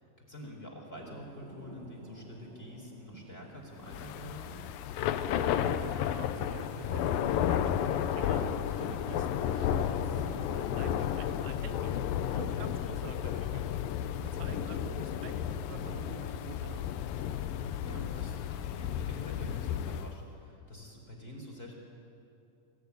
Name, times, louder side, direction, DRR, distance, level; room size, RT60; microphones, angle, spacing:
voice 1, 0.0-4.6 12.5-12.7 14.6-15.0 17.8-21.7, left 1 dB, 15° left, -1 dB, 4.1 m, -47 dB
Thunder, 1.0-18.8, right 4 dB, 45° right, 1.5 m, -56 dB
Thunder / Rain, 3.9-20.2, left 9 dB, 90° left, 2.5 m, -32 dB
voice 2, 5.3-12.0 12.3-16.9, right 9 dB, 80° right, 9 dB, 2.4 m, -47 dB
25.0 x 15.0 x 9.6 m, 2.7 s
omnidirectional pair, 3.9 m